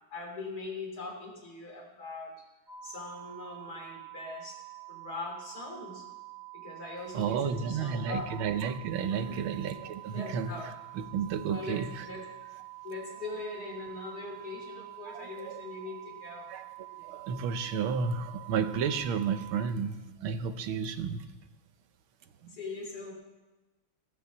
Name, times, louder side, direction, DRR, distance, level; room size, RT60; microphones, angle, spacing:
voice 1, 0.1-2.3 2.8-4.6 4.9-6.1 6.5-8.3 9.1-9.4 10.1-10.7 11.5-12.2 12.8-16.5 22.5-23.1, left 3 dB, 45° left, 0 dB, 3.6 m, -41 dB
sound 1, 2.7-19.5, right 18 dB, 55° right, 2.5 m, -47 dB
voice 2, 7.1-12.1 15.1-15.6 16.5-16.6 17.0-21.2 22.4-22.5, right 6 dB, 80° right, 9 dB, 1.7 m, -32 dB
15.0 x 8.8 x 7.3 m, 1.1 s
omnidirectional pair, 2.3 m